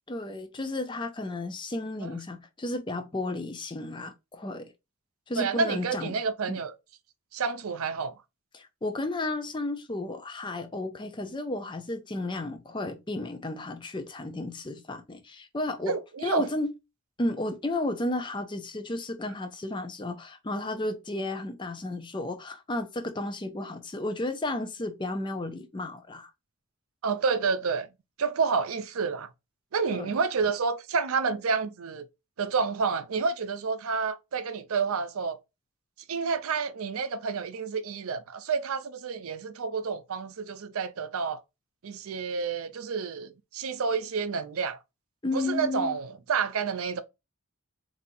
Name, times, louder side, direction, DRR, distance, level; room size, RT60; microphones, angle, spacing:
voice 1, 0.1-4.7 5.3-6.2 6.5-6.6 8.5-16.0 16.2-16.7 17.2-26.3 29.9-30.1 45.2-46.0, left 2 dB, 20° left, 0.5 m, -33 dB
voice 2, 5.4-6.7 7.3-8.1 15.9-16.5 27.0-27.9 28.2-29.3 29.7-32.0 32.4-35.4 36.1-41.4 41.8-44.8 45.3-47.0, right 5 dB, 75° right, 0.5 m, -29 dB
4.1 x 2.7 x 2.6 m
head